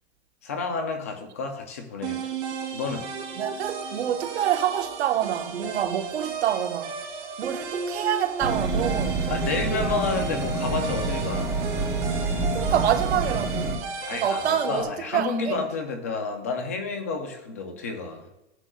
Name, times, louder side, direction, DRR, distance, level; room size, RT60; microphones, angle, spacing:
voice 1, 0.4-2.2 2.7-3.1 9.3-11.6 14.1-18.3, left 4 dB, 15° left, 0.3 m, -30 dB
sound 1, 2.0-14.8, right 5 dB, 30° right, 2.4 m, -34 dB
voice 2, 3.4-7.0 7.4-9.4 12.4-13.8 14.1-15.7, right 10 dB, 65° right, 1.3 m, -27 dB
sound 2, 8.4-13.7, right 3 dB, 5° right, 0.8 m, -27 dB
14.5 x 9.7 x 2.3 m
supercardioid pair, 165°, 35 cm